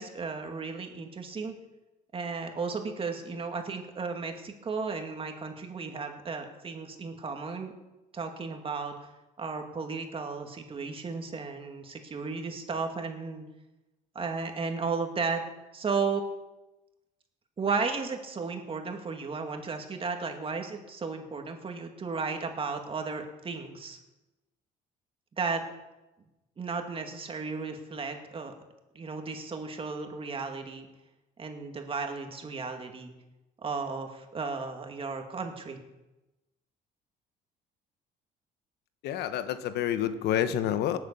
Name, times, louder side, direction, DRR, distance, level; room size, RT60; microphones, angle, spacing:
voice 1, 0.0-1.5 2.1-7.7 8.1-8.9 9.4-13.4 14.1-15.4 15.7-16.2 17.6-24.0 25.4-25.6 26.6-28.5 28.9-30.9 31.4-33.1 33.6-35.8, right 4 dB, 35° right, 4 dB, 2.3 m, -34 dB
voice 2, 39.0-41.0, left 10 dB, 75° left, 11 dB, 1.1 m, -28 dB
18.5 x 7.9 x 6.9 m, 1.0 s
cardioid pair, 110°, 17 cm